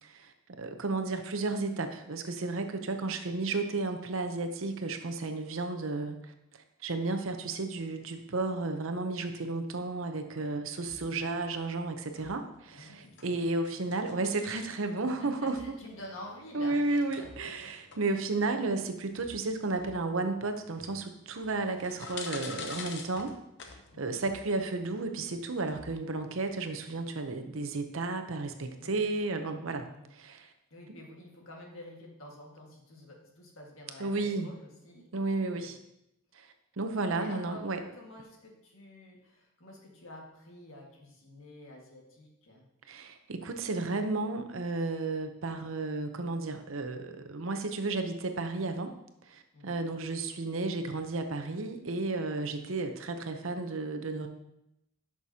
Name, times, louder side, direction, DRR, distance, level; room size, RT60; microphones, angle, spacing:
voice 1, 0.0-6.3 6.8-15.6 16.5-23.3 23.6-29.9 30.1-30.5 30.9-31.0 34.0-34.5 35.1-35.8 36.3-36.5 36.8-37.8 42.9-48.9 49.3-54.3, right 3 dB, 70° right, 6 dB, 0.7 m, -33 dB
voice 2, 10.3-10.6 10.9-11.0 12.7-13.3 15.2-17.7 18.1-18.2 23.9-24.2 28.8-29.0 29.8-30.1 30.7-35.1 35.5-35.7 37.1-42.7 49.5-49.8, left 1 dB, 70° left, -1 dB, 1.8 m, -49 dB
sound 1, 10.8-27.0, left 4 dB, 55° left, 0.8 m, -49 dB
11.0 x 6.0 x 2.8 m, 0.84 s
head